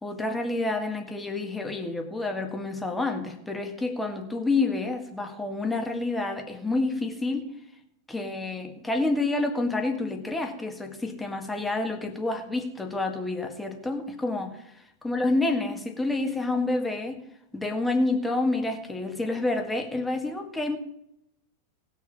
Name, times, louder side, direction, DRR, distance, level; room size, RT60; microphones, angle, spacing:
voice 1, 0.0-7.5 8.1-17.2 17.5-20.8, left 2 dB, 5° left, 4 dB, 1.8 m, -28 dB
19.0 x 6.5 x 5.4 m, 0.80 s
figure-of-eight pair, 90°, 0 cm